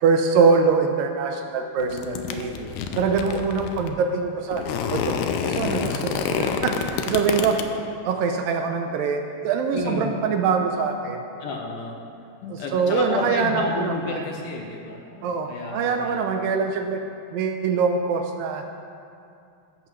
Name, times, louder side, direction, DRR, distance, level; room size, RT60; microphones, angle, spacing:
voice 1, 0.0-2.5 3.0-4.6 4.9-5.1 5.4-7.6 8.0-11.2 12.5-14.2 15.2-17.0 17.3-18.6, right 5 dB, 80° right, 5 dB, 2.1 m, -23 dB
sound 1, 1.8-3.9 4.5-7.6, left 7 dB, 90° left, 2.6 m, -28 dB
voice 2, 1.8-3.3 9.7-10.2 11.4-12.0 12.4-16.3, left 3 dB, 70° left, 0 dB, 2.2 m, -32 dB
14.5 x 13.5 x 3.1 m, 2.6 s
omnidirectional pair, 4.3 m